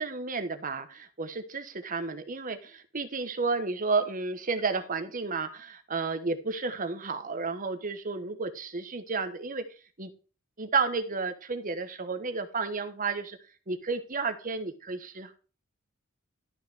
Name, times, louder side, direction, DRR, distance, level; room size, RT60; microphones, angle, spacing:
voice 1, 0.0-9.6 10.0-10.1 10.6-13.4 13.7-15.4, right 4 dB, 40° right, 9 dB, 1.1 m, -32 dB
12.5 x 5.6 x 3.4 m, 0.36 s
head